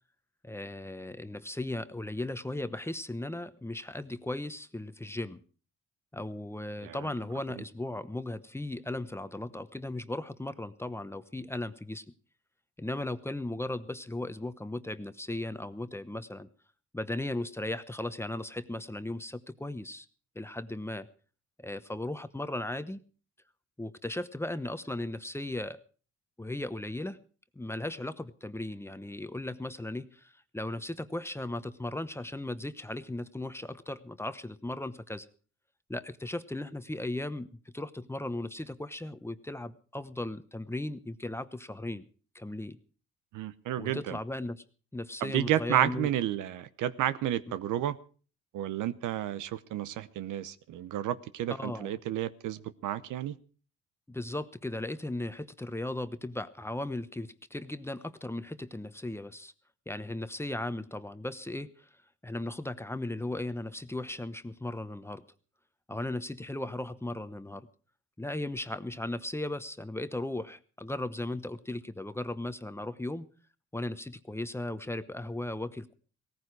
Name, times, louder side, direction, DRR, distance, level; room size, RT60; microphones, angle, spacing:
voice 1, 0.4-5.4 6.1-12.0 12.8-16.5 16.9-20.1 20.3-21.1 21.6-23.0 23.8-25.8 26.4-27.2 27.5-35.3 35.9-42.1 42.3-42.8 43.8-44.6 44.9-46.1 51.5-51.9 54.1-59.5 59.9-61.9 62.2-65.2 65.9-67.7 68.2-73.2 73.7-75.9, left 1 dB, 10° left, 12 dB, 0.9 m, -37 dB
voice 2, 43.3-44.2 45.2-48.0 48.5-53.4, right 12 dB, 85° right, 15 dB, 0.9 m, -31 dB
17.5 x 14.5 x 4.7 m, 0.39 s
cardioid pair, 90°, 30 cm